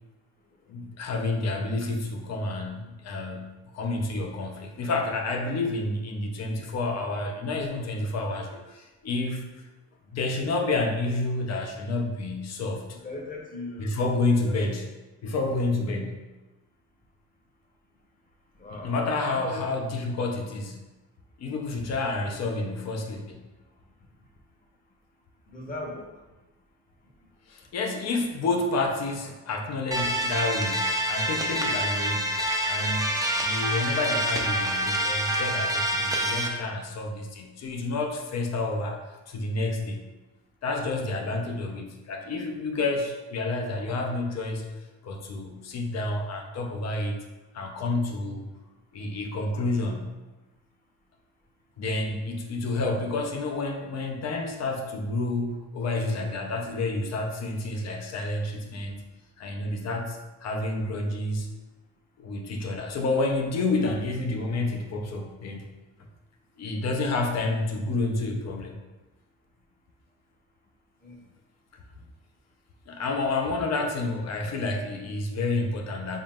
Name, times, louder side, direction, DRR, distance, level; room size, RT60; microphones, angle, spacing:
voice 1, 0.7-9.4 10.1-12.9 13.8-14.9 15.2-16.2 18.7-20.8 21.4-23.4 27.5-32.3 32.6-39.0 39.3-40.0 40.6-44.7 45.0-47.2 47.5-48.4 48.9-50.1 51.8-59.0 59.4-61.5 62.2-65.7 66.6-68.8 72.9-76.2, left 2 dB, 60° left, 2 dB, 0.7 m, -29 dB
voice 2, 12.9-14.0 14.4-14.6 18.6-18.9 19.4-19.7 25.5-26.1 71.0-71.1 73.3-73.5, left 2 dB, 30° left, -1 dB, 1.0 m, -38 dB
sound 1, 29.9-36.5, right 1 dB, 10° right, 0.5 m, -27 dB
4.1 x 3.8 x 2.4 m, 1.1 s
cardioid pair, 90°, 30 cm